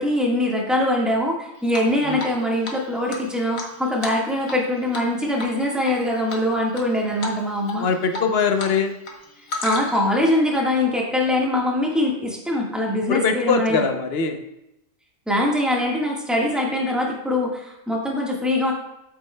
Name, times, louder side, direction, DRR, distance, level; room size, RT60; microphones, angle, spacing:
voice 1, 0.0-7.9 9.6-13.9 15.3-18.7, left 1 dB, ahead, -2 dB, 1.4 m, -23 dB
Drip, 1.7-2.4 2.6-2.7 3.1-4.6 4.9-5.1 5.4-5.9 6.3-6.8 7.2-7.4 7.7-8.7 9.0-10.1, left 2 dB, 90° left, 1.5 m, -32 dB
voice 2, 7.8-9.0 13.1-14.4, left 5 dB, 55° left, 7 dB, 0.9 m, -22 dB
8.4 x 8.0 x 2.2 m, 0.89 s
omnidirectional pair, 1.4 m